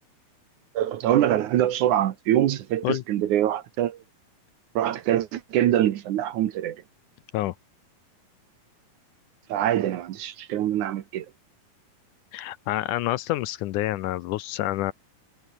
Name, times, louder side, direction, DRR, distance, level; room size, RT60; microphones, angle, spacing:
voice 1, 0.7-4.0 4.8-6.8 9.5-11.3, right 12 dB, 65° right, 2.3 m, -24 dB
voice 2, 12.3-14.9, left 16 dB, 75° left, 1.9 m, -28 dB
omnidirectional pair, 4.2 m